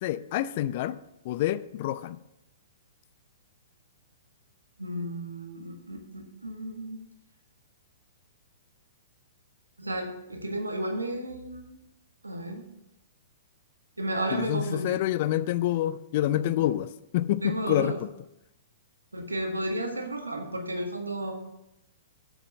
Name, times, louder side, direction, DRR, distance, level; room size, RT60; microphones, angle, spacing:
voice 1, 0.0-1.0 1.2-2.2 14.3-16.9 17.1-18.0, left 13 dB, 45° left, 15 dB, 0.5 m, -27 dB
voice 2, 4.8-7.0 9.8-11.8 12.2-12.6 14.0-15.0 16.6-16.7 17.4-18.0 19.1-21.4, right 1 dB, 85° right, 4 dB, 1.5 m, -33 dB
7.4 x 6.9 x 6.3 m, 0.86 s
figure-of-eight pair, 110°, 0 cm